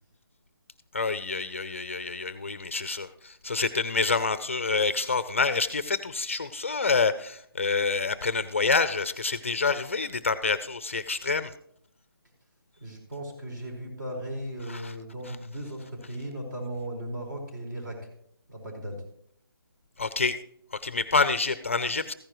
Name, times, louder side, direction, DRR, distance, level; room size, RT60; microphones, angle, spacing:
voice 1, 0.9-11.5 14.7-14.9 20.0-20.4 20.7-22.1, left 4 dB, 30° left, 13 dB, 0.4 m, -27 dB
voice 2, 12.8-18.1 18.5-19.0, right 1 dB, 55° right, 1 dB, 4.7 m, -37 dB
14.5 x 10.0 x 3.0 m, 0.68 s
hypercardioid pair, 170°, 13 cm